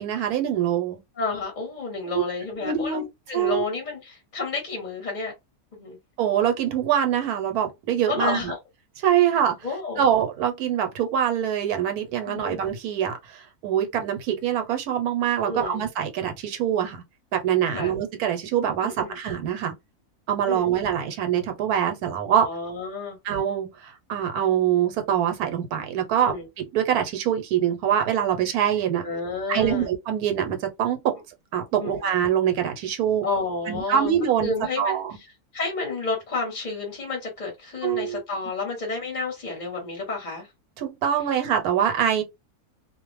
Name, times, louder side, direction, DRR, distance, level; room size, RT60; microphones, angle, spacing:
voice 1, 0.0-1.0 2.1-2.2 2.6-3.0 3.3-3.6 6.2-8.5 9.0-9.6 10.0-17.0 17.3-19.7 20.3-22.5 23.2-29.0 29.5-31.2 31.5-33.3 33.7-35.2 37.8-38.2 40.8-42.2, right 9 dB, 80° right, 1.2 m, -24 dB
voice 2, 1.2-5.3 5.7-6.0 8.1-8.6 9.6-10.0 12.2-12.6 15.4-15.8 17.6-17.9 18.8-19.2 20.4-20.8 22.4-23.2 26.2-26.5 29.0-29.9 31.8-31.9 33.2-34.1 34.4-35.3 35.5-40.5, left 3 dB, 35° left, 0.8 m, -30 dB
2.5 x 2.0 x 3.1 m
omnidirectional pair, 1.6 m